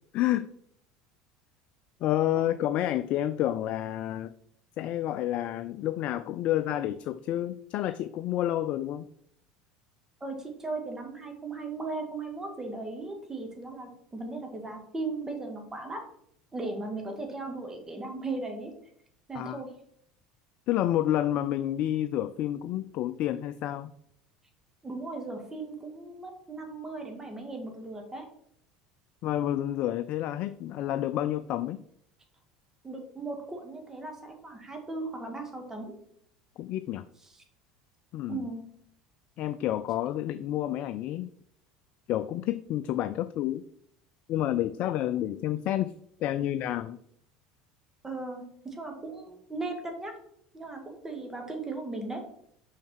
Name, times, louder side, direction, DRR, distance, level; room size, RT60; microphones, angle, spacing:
voice 1, 0.1-0.5 2.0-4.3 4.8-9.1 19.3-19.6 20.7-23.9 29.2-31.8 36.6-37.0 38.1-38.5 39.4-41.3 42.1-43.6 44.3-45.9 46.2-47.0, left 12 dB, 55° left, 13 dB, 0.4 m, -29 dB
voice 2, 10.2-16.0 16.5-18.7 19.3-19.7 24.8-28.3 32.8-35.9 37.2-37.3 38.3-38.6 48.0-50.1 50.5-52.2, right 3 dB, 20° right, 3 dB, 1.9 m, -37 dB
5.8 x 5.6 x 4.6 m, 0.69 s
hypercardioid pair, 75°, 3 cm